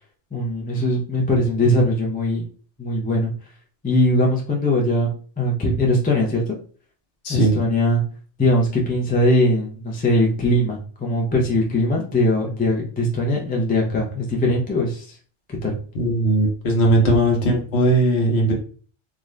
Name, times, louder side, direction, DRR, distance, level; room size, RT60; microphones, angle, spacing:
voice 1, 0.3-2.5 2.8-3.3 3.8-6.5 7.3-8.0 8.4-15.2 15.6-15.8, left 1 dB, 15° left, -1 dB, 0.3 m, -20 dB
voice 2, 7.2-7.6 15.9-18.5, right 1 dB, 65° left, 0 dB, 1.1 m, -18 dB
2.5 x 2.5 x 3.2 m, 0.41 s
omnidirectional pair, 1.2 m